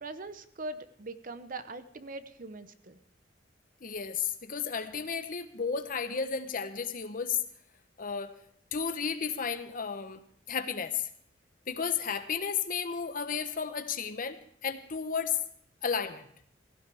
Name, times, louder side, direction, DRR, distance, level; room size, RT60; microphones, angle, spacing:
voice 1, 0.0-3.0, right 2 dB, 45° right, 12 dB, 0.8 m, -41 dB
voice 2, 3.8-7.4 8.0-8.3 8.7-10.2 10.5-11.1 11.7-15.4 15.8-16.3, left 6 dB, 45° left, 10 dB, 0.9 m, -33 dB
16.5 x 15.5 x 3.5 m, 0.65 s
head